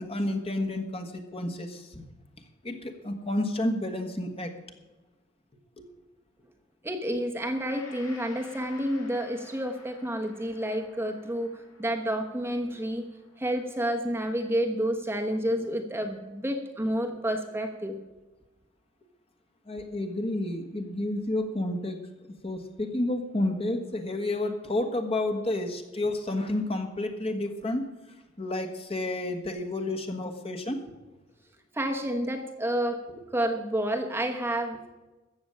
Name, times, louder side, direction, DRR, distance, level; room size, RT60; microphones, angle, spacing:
voice 1, 0.0-2.0 2.6-4.5 5.8-5.9 19.7-22.0 22.4-27.8 28.4-30.8, left 1 dB, 30° left, 5 dB, 1.5 m, -30 dB
voice 2, 6.8-11.5 11.8-13.0 13.4-18.0 31.7-33.0 33.3-35.0, equal, 10° right, 3 dB, 1.1 m, -29 dB
Gong, 7.5-15.8 16.3-16.5, left 3 dB, 85° left, 3.3 m, -53 dB
14.5 x 7.0 x 8.8 m, 1.1 s
head